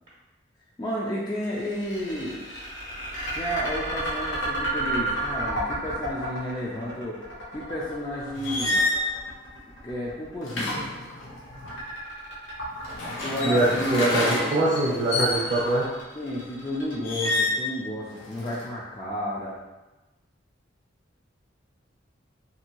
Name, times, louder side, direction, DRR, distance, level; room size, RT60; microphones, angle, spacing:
voice 1, 0.8-2.4 3.3-7.2 7.5-8.8 9.8-10.8 13.2-14.6 16.1-19.6, equal, 20° left, -7 dB, 0.3 m, -32 dB
sound 1, 1.4-17.6, right 1 dB, 70° left, 1.0 m, -33 dB
sound 2, 8.3-9.0 10.4-11.7 12.7-15.8 17.0-17.7 18.1-18.7, left 2 dB, 90° left, 0.6 m, -28 dB
voice 2, 13.4-15.9, right 2 dB, 45° right, -7 dB, 0.5 m, -23 dB
2.6 x 2.6 x 2.9 m, 1.1 s
head